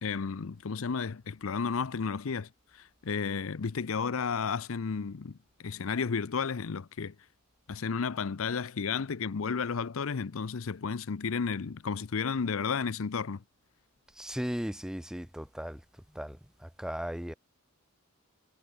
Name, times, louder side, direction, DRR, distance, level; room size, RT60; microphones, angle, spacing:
voice 1, 0.0-5.4 5.6-7.1 7.7-13.4, left 5 dB, 65° left, 0.6 m, -32 dB
voice 2, 14.2-15.8 16.1-16.4 16.6-17.3, equal, 5° right, 0.9 m, -36 dB
head